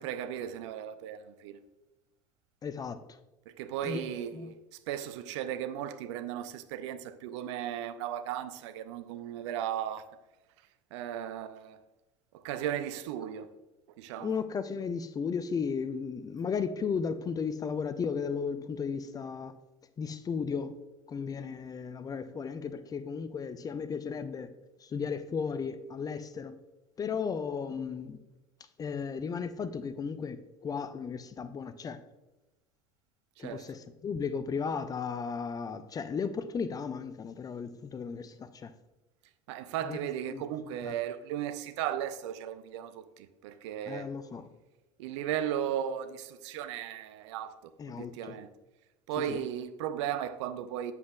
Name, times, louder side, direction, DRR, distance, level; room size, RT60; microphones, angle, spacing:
voice 1, 0.0-1.6 3.6-4.5 4.9-10.0 10.9-11.8 12.4-13.5 14.0-14.3 33.4-33.7 39.5-44.1 45.0-47.6 47.9-48.5 49.1-50.9, right 10 dB, 60° right, 0.5 m, -36 dB
voice 2, 2.6-3.2 3.8-4.0 4.3-4.5 14.2-19.6 20.0-20.7 21.1-24.5 24.8-26.6 27.0-28.2 28.8-32.0 33.4-38.7 39.8-40.0 40.3-40.5 40.8-41.0 43.9-44.5 47.8-48.4 49.2-49.4, left 6 dB, 20° left, 0.4 m, -35 dB
8.1 x 7.1 x 2.3 m
figure-of-eight pair, 70°, 17 cm